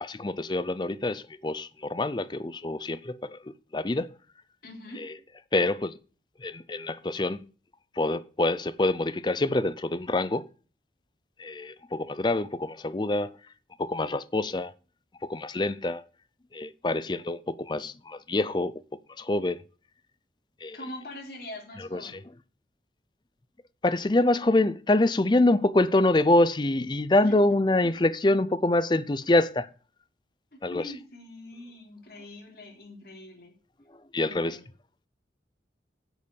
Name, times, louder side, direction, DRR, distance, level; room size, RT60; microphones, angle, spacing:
voice 1, 0.0-4.1 5.0-5.2 5.5-6.0 6.4-7.4 7.9-10.5 11.4-13.4 13.8-14.7 15.2-16.0 16.5-19.6 20.6-20.8 21.8-22.2 23.8-29.7 30.6-30.9 33.9-34.6, left 2 dB, 25° left, 0.5 m, -26 dB
voice 2, 4.6-5.1 20.7-22.2 27.2-27.4 30.5-33.5 34.2-34.6, left 1 dB, 55° left, 3.5 m, -43 dB
8.0 x 6.8 x 6.9 m
head